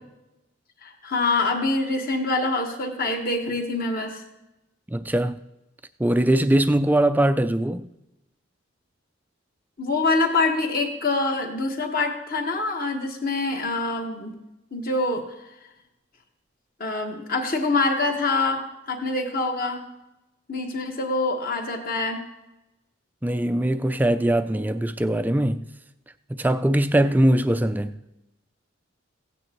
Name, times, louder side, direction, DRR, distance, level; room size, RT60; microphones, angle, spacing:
voice 1, 0.8-4.2 9.8-14.4 14.7-15.2 16.8-19.8 20.5-22.2, left 3 dB, 45° left, 1.4 m, -25 dB
voice 2, 4.9-5.3 6.0-7.9 23.2-25.7 26.3-27.9, right 1 dB, 10° right, 0.3 m, -21 dB
16.0 x 9.2 x 3.0 m
head